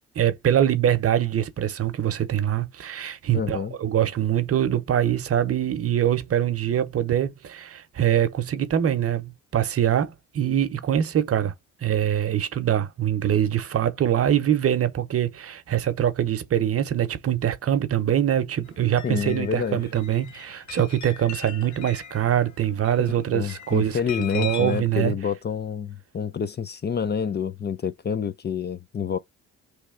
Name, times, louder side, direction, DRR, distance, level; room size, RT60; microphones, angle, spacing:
voice 1, 0.1-11.5 11.8-25.1, right 10 dB, 50° right, 0.8 m, -24 dB
voice 2, 3.3-3.7 19.0-19.8 23.0-29.2, left 7 dB, 35° left, 0.5 m, -28 dB
sound 1, 18.7-24.8, left 9 dB, 70° left, 0.9 m, -40 dB
3.3 x 3.2 x 4.8 m
cardioid pair, 90°, 30 cm